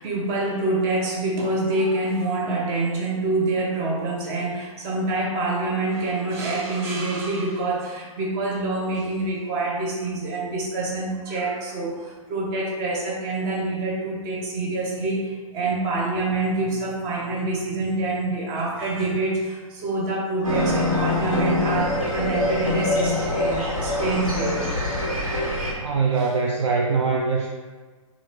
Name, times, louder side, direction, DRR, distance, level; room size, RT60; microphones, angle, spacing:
voice 1, 0.0-24.6 26.2-26.3, right 2 dB, 30° right, -2 dB, 0.8 m, -26 dB
sound 1, 20.4-25.7, left 1 dB, 85° right, 1.3 m, -24 dB
voice 2, 25.8-27.5, right 4 dB, 55° right, 0 dB, 0.4 m, -22 dB
3.8 x 2.4 x 3.3 m, 1.4 s
figure-of-eight pair, 120°, 18 cm